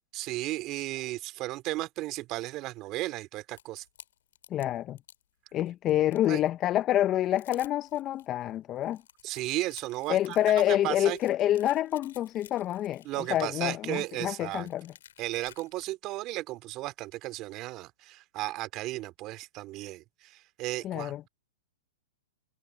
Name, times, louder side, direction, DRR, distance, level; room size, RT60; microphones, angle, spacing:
voice 1, 0.1-3.8 6.3-6.4 9.2-10.4 10.7-11.2 13.1-14.7 15.2-21.3, right 18 dB, 35° right, 2.5 m, -35 dB
sound 1, 3.6-5.2 5.7-6.5 6.9-7.0 7.2-8.3 8.7-15.9, left 10 dB, 70° left, 4.8 m, -54 dB
voice 2, 4.5-5.0 5.5-9.0 10.1-13.0 13.3-14.9 20.8-21.2, left 12 dB, 30° left, 0.8 m, -27 dB
hypercardioid pair, 125°, 0 cm